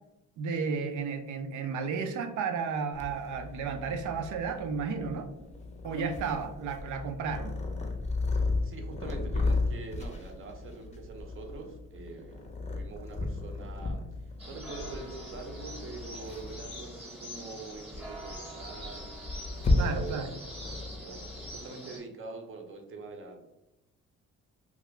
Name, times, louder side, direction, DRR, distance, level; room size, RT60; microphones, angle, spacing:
voice 1, 0.4-5.3 5.8-7.5 19.8-20.3, right 5 dB, 75° right, 6 dB, 0.5 m, -33 dB
Purr, 2.9-21.6, left 2 dB, 20° left, 0.6 m, -34 dB
voice 2, 8.6-19.1 19.7-20.4 21.0-23.4, right 3 dB, 45° right, 3 dB, 0.7 m, -44 dB
sound 1, 14.4-22.0, equal, 5° right, 1.0 m, -44 dB
2.7 x 2.4 x 3.2 m, 0.95 s
cardioid pair, 90°, 30 cm